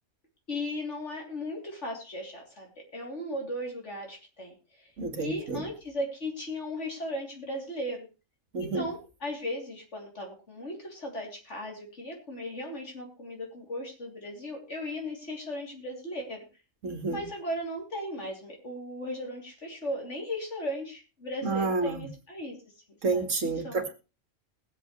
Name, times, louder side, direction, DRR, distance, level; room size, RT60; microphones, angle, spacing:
voice 1, 0.5-4.9 5.2-8.0 8.6-16.4 17.1-22.6 23.1-23.3 23.6-23.8, left 1 dB, 65° left, 0 dB, 3.4 m, -37 dB
voice 2, 5.0-5.6 8.5-8.9 16.8-17.3 21.4-22.1 23.0-23.9, right 3 dB, 80° right, 5 dB, 2.2 m, -29 dB
21.0 x 8.1 x 3.2 m, 0.31 s
omnidirectional pair, 1.3 m